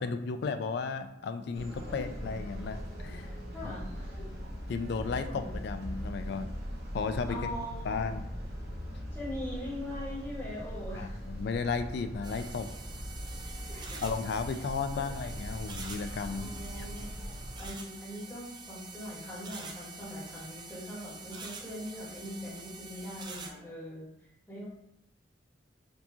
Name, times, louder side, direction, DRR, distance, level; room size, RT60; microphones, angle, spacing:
voice 1, 0.0-3.3 3.6-3.7 4.7-6.6 6.9-7.4 7.9-8.3 10.9-12.7 14.0-16.9, left 5 dB, 60° left, 9 dB, 0.3 m, -34 dB
sound 1, 1.5-17.7, equal, 60° right, 0.8 m, -40 dB
voice 2, 1.6-2.1 3.5-4.3 5.3-5.6 7.3-8.0 9.1-11.2 13.6-14.0 14.9-15.2 16.3-17.2 17.6-24.1 24.5-24.7, left 1 dB, 10° left, -9 dB, 1.4 m, -41 dB
sound 2, 12.2-23.5, right 4 dB, 25° right, 0.4 m, -46 dB
4.5 x 2.7 x 2.8 m, 0.77 s
head